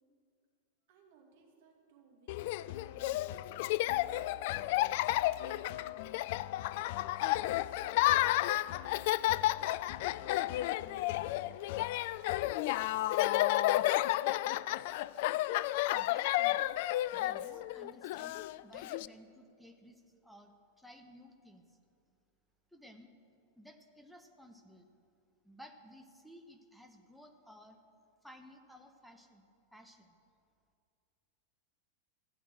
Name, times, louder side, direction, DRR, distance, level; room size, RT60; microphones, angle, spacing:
voice 1, 0.9-3.3 4.1-6.2 6.8-7.1 7.5-8.2 8.6-11.1, right 4 dB, 50° right, 0 dB, 2.6 m, -64 dB
Laughter, 2.3-19.1, left 16 dB, 50° left, 0.3 m, -32 dB
voice 2, 15.9-16.6 17.1-21.8 22.7-23.1 23.6-24.9 25.4-27.8 28.2-30.2, equal, ahead, 5 dB, 1.3 m, -56 dB
15.5 x 8.5 x 7.8 m, 2.4 s
figure-of-eight pair, 90°, 0 cm